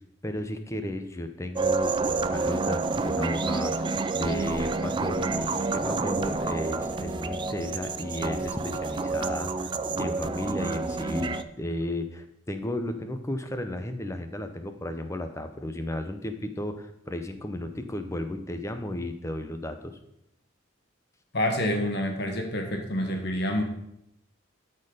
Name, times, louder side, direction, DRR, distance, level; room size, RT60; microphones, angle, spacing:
voice 1, 0.2-20.0, left 1 dB, 15° left, 8 dB, 0.7 m, -34 dB
sound 1, 1.6-11.4, right 3 dB, 25° right, 0.3 m, -29 dB
voice 2, 21.3-23.6, left 1 dB, 55° left, 3 dB, 1.6 m, -27 dB
12.5 x 4.5 x 5.0 m, 0.79 s
head